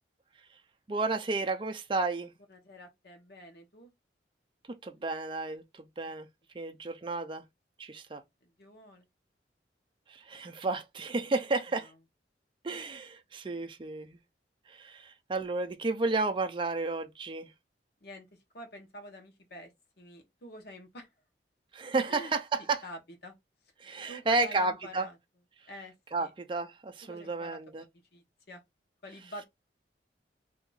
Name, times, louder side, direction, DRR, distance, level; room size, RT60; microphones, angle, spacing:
voice 1, 0.9-2.3 4.8-6.3 6.5-7.4 7.8-8.2 10.1-11.9 12.6-14.2 14.7-17.5 21.7-22.8 23.8-25.1 26.1-27.8, right 3 dB, 25° right, 0.4 m, -32 dB
voice 2, 2.5-3.9 6.0-6.1 8.4-9.0 11.7-11.9 18.0-18.3 18.5-19.7 20.0-21.1 22.1-22.3 22.8-23.3 24.1-25.2 25.7-25.9 26.2-26.3 27.0-27.6 28.1-28.6 29.0-29.5, equal, 60° left, 1.0 m, -47 dB
2.8 x 2.5 x 3.8 m
head